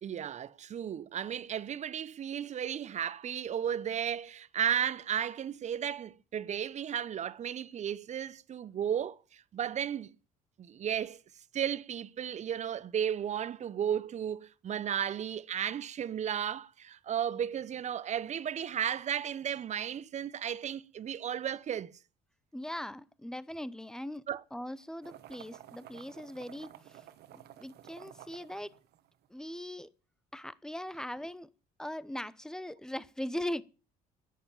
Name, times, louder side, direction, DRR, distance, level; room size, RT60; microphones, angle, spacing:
voice 1, 0.0-10.1 10.6-11.2 11.5-21.9 24.3-24.4, right 9 dB, 45° right, 0.8 m, -34 dB
voice 2, 22.5-24.2 24.5-27.0 27.3-28.7 29.3-29.9 30.3-31.5 31.8-33.6, left 1 dB, 5° left, 0.8 m, -40 dB
sound 1, 25.0-29.4, right 12 dB, 70° right, 1.2 m, -52 dB
11.0 x 9.6 x 8.8 m
cardioid pair, 110°, 17 cm